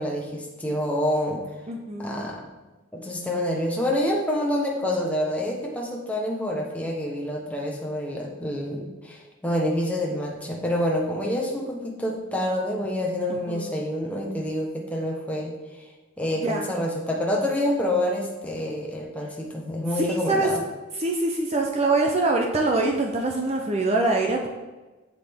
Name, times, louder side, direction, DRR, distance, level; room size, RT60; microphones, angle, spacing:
voice 1, 0.0-1.5 2.0-2.5 2.9-15.9 16.2-20.6, left 1 dB, 5° left, -2 dB, 1.1 m, -27 dB
voice 2, 1.7-2.3 13.3-13.8 16.4-16.7 20.0-20.5 21.0-24.5, right 2 dB, 30° right, 1 dB, 0.7 m, -24 dB
8.1 x 7.4 x 3.6 m, 1.2 s
head